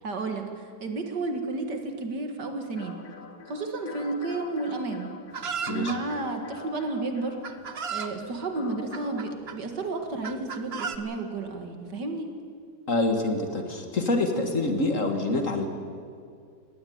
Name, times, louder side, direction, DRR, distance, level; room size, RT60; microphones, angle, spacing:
voice 1, 0.0-3.0 3.5-5.1 5.7-7.4 7.9-12.3, right 3 dB, 60° right, 5 dB, 2.5 m, -32 dB
sound 1, 2.8-9.4, left 5 dB, 75° left, 2.1 m, -44 dB
Chicken rooster, 5.3-6.0 6.9-7.0 7.4-8.1 8.9-9.6 10.2-11.0, right 6 dB, 40° right, 1.0 m, -34 dB
voice 2, 12.9-15.7, left 2 dB, 45° left, 5 dB, 2.1 m, -26 dB
19.5 x 16.5 x 9.4 m, 2.3 s
omnidirectional pair, 2.0 m